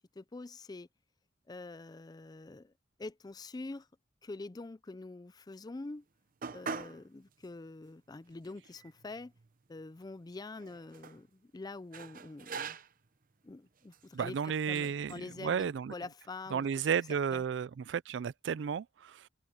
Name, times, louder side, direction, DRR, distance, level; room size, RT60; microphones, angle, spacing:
voice 1, 0.2-0.9 1.5-2.7 3.0-3.9 4.2-6.0 6.5-9.3 9.7-12.8 13.4-16.9 17.3-17.4, left 3 dB, 20° left, 0.4 m, -45 dB
sound 1, 6.4-7.0 7.4-7.5 8.3-8.4 8.7-9.7 10.6-11.2 11.9-13.1 13.8-14.1 14.7-15.2, right 5 dB, 50° right, 0.8 m, -43 dB
voice 2, 14.1-15.9 16.5-19.3, right 7 dB, 70° right, 0.4 m, -33 dB
head